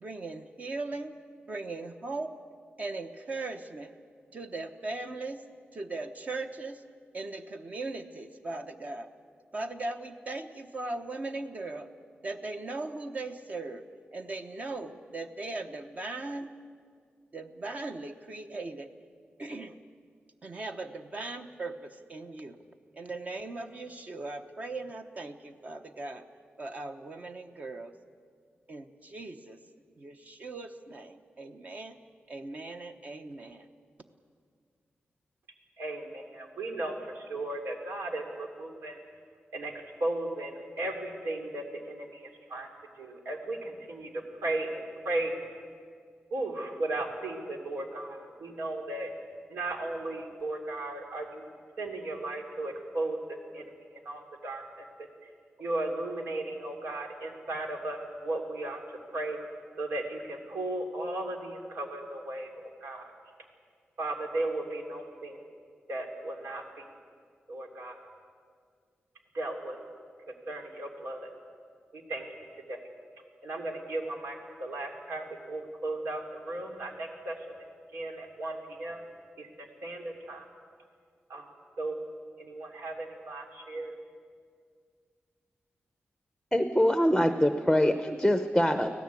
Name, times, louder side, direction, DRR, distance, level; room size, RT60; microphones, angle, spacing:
voice 1, 0.0-1.2 1.5-2.4 2.8-3.9 4.3-5.4 5.7-6.8 7.1-9.1 9.5-11.9 12.2-16.5 17.3-18.9 19.4-19.8 20.4-22.6 22.9-26.3 26.6-28.0 28.7-29.6 30.0-32.0 32.3-33.7, right 2 dB, 40° right, 7 dB, 1.0 m, -39 dB
voice 2, 35.8-39.0 39.5-39.7 40.0-40.5 40.8-42.7 43.0-44.1 44.4-45.3 46.3-49.1 49.5-51.4 51.8-53.2 53.5-53.6 54.0-54.6 55.6-58.8 59.1-59.4 59.8-62.5 62.8-63.1 64.0-65.4 65.9-66.8 67.5-68.0 69.3-69.8 70.5-71.3 72.1-72.2 72.7-72.8 73.4-79.0 79.4-80.4 81.3-81.9 82.4-84.0, right 2 dB, 90° right, 3 dB, 3.1 m, -35 dB
voice 3, 86.5-88.9, equal, ahead, 8 dB, 0.7 m, -24 dB
25.0 x 17.0 x 8.3 m, 2.1 s
wide cardioid pair, 170°, 4 cm